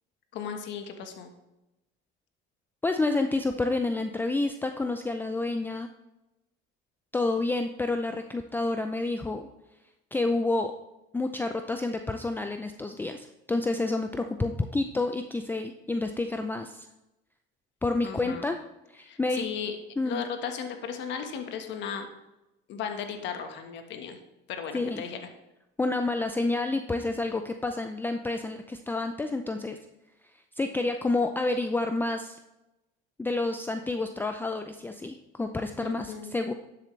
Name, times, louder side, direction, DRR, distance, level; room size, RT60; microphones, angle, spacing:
voice 1, 0.3-1.3 18.0-18.5 19.1-19.7 20.0-22.1 22.7-24.2 24.5-25.2 35.8-36.3, left 7 dB, 65° left, 6 dB, 1.4 m, -36 dB
voice 2, 2.8-5.9 7.1-9.5 10.1-10.7 11.1-16.9 17.8-18.6 18.9-19.4 20.0-20.2 24.7-25.0 25.8-29.8 30.6-32.4 33.2-36.5, left 2 dB, 10° left, 6 dB, 0.5 m, -29 dB
12.0 x 7.6 x 3.2 m, 0.95 s
cardioid pair, 115°, 20 cm